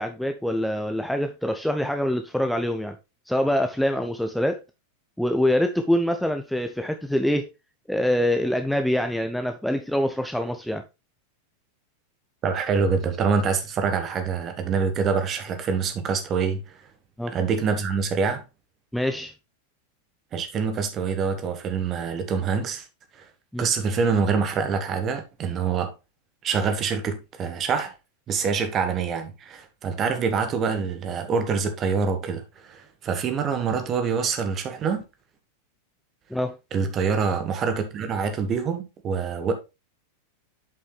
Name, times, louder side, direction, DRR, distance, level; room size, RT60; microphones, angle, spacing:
voice 1, 0.0-3.0 3.3-4.6 5.2-7.5 7.9-10.8 17.2-17.3 18.9-19.3 23.5-23.7 36.3-36.5, left 1 dB, ahead, 0.6 m, -25 dB
voice 2, 12.4-16.6 17.3-18.4 20.3-22.8 23.1-23.2 23.6-25.9 26.4-27.9 28.3-35.0 36.7-39.5, right 5 dB, 30° right, 1.4 m, -25 dB
7.4 x 5.5 x 3.3 m
figure-of-eight pair, 90°, 0 cm